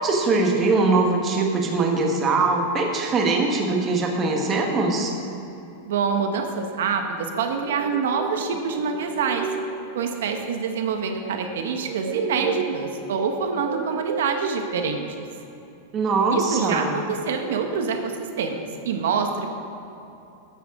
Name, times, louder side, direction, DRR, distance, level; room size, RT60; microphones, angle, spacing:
voice 1, 0.0-5.1 15.9-17.0, right 3 dB, 20° right, 1 dB, 1.3 m, -22 dB
voice 2, 5.8-9.5 9.9-15.2 16.3-19.5, right 5 dB, 80° right, 5 dB, 1.1 m, -26 dB
sound 1, 7.3-14.7, right 6 dB, 55° right, 0.8 m, -33 dB
14.0 x 9.3 x 3.7 m, 2.9 s
supercardioid pair, 165°, 0 cm